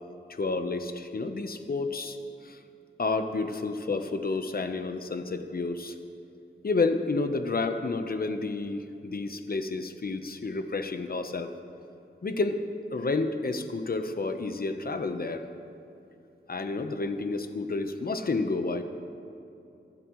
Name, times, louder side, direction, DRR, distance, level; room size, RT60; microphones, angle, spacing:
voice 1, 0.3-2.2 2.4-2.6 3.0-5.9 6.6-11.5 12.2-12.6 12.9-15.4 16.5-18.8, left 3 dB, 50° left, 8 dB, 0.9 m, -30 dB
23.0 x 12.0 x 3.2 m, 2.8 s
wide cardioid pair, 80°, 20 cm